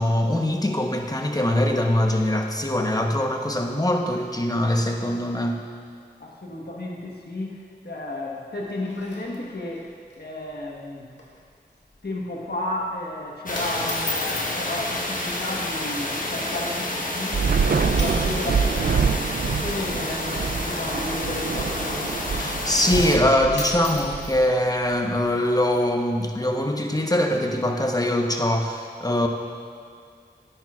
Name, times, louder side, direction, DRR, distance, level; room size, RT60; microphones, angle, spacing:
voice 1, 0.0-5.6 22.3-29.3, left 1 dB, 20° left, 2 dB, 1.0 m, -23 dB
voice 2, 6.2-7.6 7.8-9.9 10.2-11.2 12.0-22.2, left 1 dB, 65° left, -2 dB, 1.3 m, -33 dB
sound 1, 8.5-9.8 10.1-10.2 10.5-10.7 11.1-11.4 11.8-12.1 12.8-13.1 13.5-14.6 15.6-15.9 16.5-16.6 17.4-17.6 17.9-18.6 18.9-22.4 23.2-23.3 23.5-25.8, left 2 dB, 90° left, 1.9 m, -38 dB
sound 2, 13.5-23.2, left 1 dB, 50° left, 1.1 m, -29 dB
Thunder / Rain, 17.3-24.8, right 5 dB, 65° right, 0.4 m, -26 dB
13.5 x 10.5 x 2.4 m, 2.2 s
wide cardioid pair, 45°, 18 cm